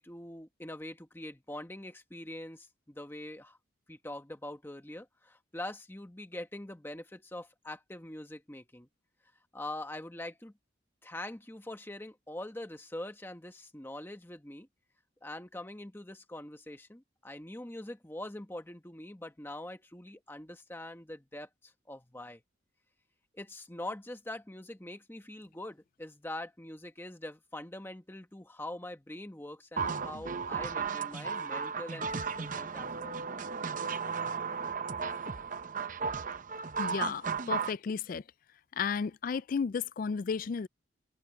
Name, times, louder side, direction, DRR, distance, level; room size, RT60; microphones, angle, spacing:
voice 1, 0.0-3.6 3.9-8.9 9.5-10.5 11.0-14.7 15.2-22.4 23.3-33.2, left 1 dB, 10° left, 1.1 m, -43 dB
sound 1, 29.8-37.8, right 5 dB, 40° right, 0.7 m, -35 dB
voice 2, 36.8-38.2 38.8-40.7, left 5 dB, 45° left, 0.3 m, -33 dB
head